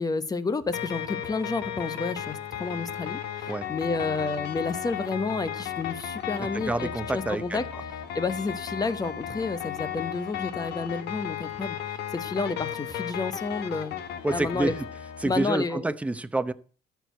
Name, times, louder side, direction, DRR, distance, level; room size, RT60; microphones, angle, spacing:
voice 1, 0.0-7.6 8.1-13.9 14.3-14.7 15.2-15.9, left 4 dB, 20° left, 1.0 m, -30 dB
sound 1, 0.7-15.5, left 9 dB, 80° left, 1.4 m, -35 dB
voice 2, 6.5-7.6 14.2-14.7 15.2-16.5, right 2 dB, 10° right, 0.7 m, -28 dB
13.5 x 4.7 x 8.2 m
cardioid pair, 110°, 17 cm